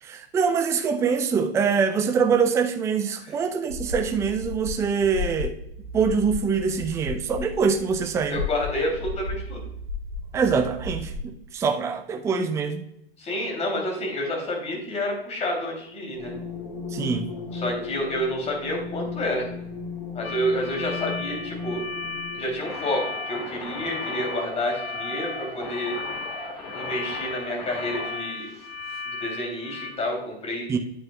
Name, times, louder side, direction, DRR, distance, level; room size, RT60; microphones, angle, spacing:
voice 1, 0.0-5.6 5.9-8.4 10.3-12.9 16.9-17.3 30.7-30.8, right 5 dB, 10° right, 7 dB, 0.5 m, -24 dB
sound 1, 3.7-11.2, left 3 dB, 85° right, 2.1 m, -34 dB
voice 2, 8.3-9.6 13.2-16.3 17.5-19.5 20.1-21.8 22.3-26.0 26.7-28.5 29.1-30.7, left 1 dB, 20° left, 1 dB, 3.0 m, -29 dB
sound 2, 16.1-29.0, left 4 dB, 45° left, 3.3 m, -36 dB
sound 3, 20.2-29.9, left 4 dB, 65° left, 1.4 m, -36 dB
9.1 x 8.6 x 2.3 m, 0.76 s
figure-of-eight pair, 105°, 31 cm